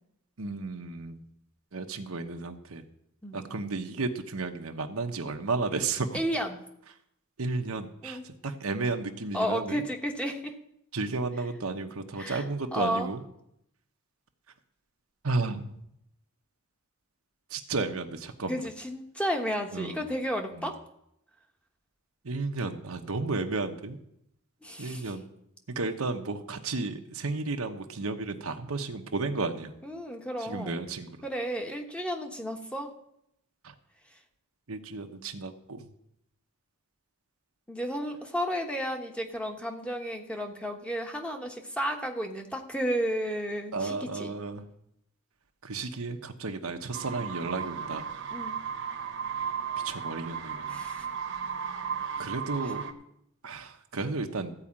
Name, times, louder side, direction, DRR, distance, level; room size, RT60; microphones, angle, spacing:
voice 1, 0.4-1.2 1.7-2.8 3.3-6.2 7.4-9.8 10.9-13.2 15.2-15.8 17.5-18.6 19.7-20.0 20.6-20.7 22.2-24.0 24.8-25.3 25.7-29.8 30.4-31.2 33.6-33.7 34.7-35.9 43.7-44.6 45.6-48.1 49.8-50.8 52.2-52.9 53.4-54.5, right 3 dB, 90° right, 5 dB, 1.1 m, -33 dB
voice 2, 6.1-6.6 8.0-8.2 9.3-10.6 12.2-12.5 12.7-13.1 18.5-20.8 24.6-25.1 29.8-30.9 31.2-32.9 34.1-34.2 37.7-44.3 48.3-48.6 50.7-51.1 52.6-52.7, equal, 5° left, 3 dB, 1.1 m, -33 dB
sound 1, 46.9-52.9, right 7 dB, 60° right, 1.1 m, -35 dB
14.5 x 4.9 x 8.7 m, 0.78 s
head